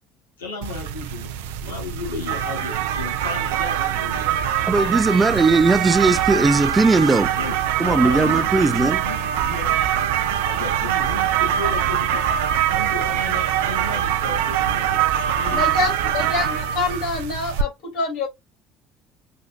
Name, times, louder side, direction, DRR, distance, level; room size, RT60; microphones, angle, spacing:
voice 1, 0.4-4.7 6.9-9.8 10.4-12.2 12.6-15.0 15.3-16.3, left 4 dB, 85° left, 1.5 m, -34 dB
sound 1, 0.6-17.6, right 10 dB, 75° right, 0.5 m, -23 dB
voice 2, 4.7-7.3 7.8-9.0, right 3 dB, 20° right, 0.5 m, -18 dB
voice 3, 15.5-18.3, left 3 dB, 55° left, 2.9 m, -26 dB
6.3 x 2.6 x 2.4 m
figure-of-eight pair, 60°, 0 cm